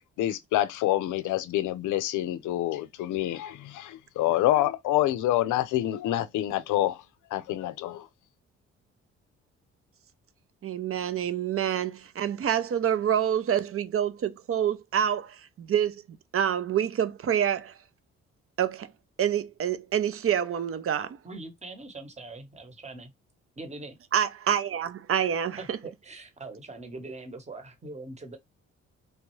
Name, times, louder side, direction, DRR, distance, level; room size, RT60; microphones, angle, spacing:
voice 1, 0.2-7.0 7.3-8.1, left 14 dB, 80° left, 0.5 m, -27 dB
voice 2, 10.6-16.0 16.3-17.8 18.6-18.9 19.2-21.2 24.1-25.8, right 9 dB, 50° right, 0.5 m, -27 dB
voice 3, 21.0-23.1 23.6-23.9 25.6-28.4, right 2 dB, 20° right, 1.0 m, -42 dB
3.2 x 2.3 x 3.0 m
supercardioid pair, 55°, 30 cm